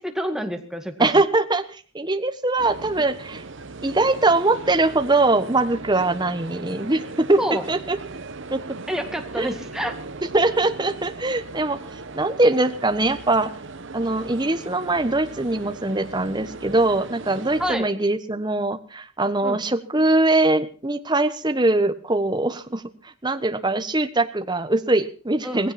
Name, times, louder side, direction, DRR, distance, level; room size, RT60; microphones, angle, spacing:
voice 1, 0.0-1.2 7.4-7.7 8.9-10.0 17.6-17.9 19.4-19.6 25.4-25.7, equal, ahead, 5 dB, 2.0 m, -28 dB
voice 2, 1.0-3.4 3.8-7.4 7.7-8.0 8.5-8.6 9.4-9.5 10.3-11.8 12.1-13.5 13.9-22.8 23.2-25.7, right 2 dB, 20° right, 9 dB, 1.2 m, -22 dB
sound 1, 2.6-17.7, right 3 dB, 55° right, 1.1 m, -38 dB
18.5 x 16.0 x 4.3 m, 0.38 s
head